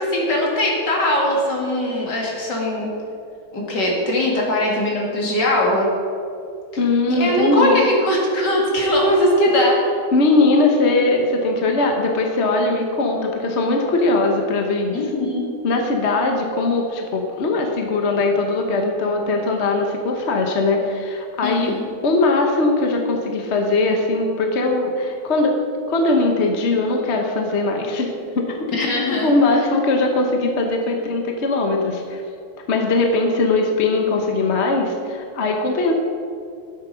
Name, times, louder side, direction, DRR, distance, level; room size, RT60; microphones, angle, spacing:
voice 1, 0.0-2.9 3.5-5.9 7.1-9.9 14.9-15.5 21.4-21.9 28.7-29.3, left 1 dB, 60° left, -2 dB, 2.8 m, -20 dB
voice 2, 6.8-7.8 10.1-15.0 15.6-21.7 22.0-25.5 25.9-28.9 29.2-32.2 32.7-35.9, left 2 dB, 45° left, 2 dB, 1.0 m, -20 dB
12.0 x 7.9 x 5.6 m, 2.5 s
omnidirectional pair, 2.2 m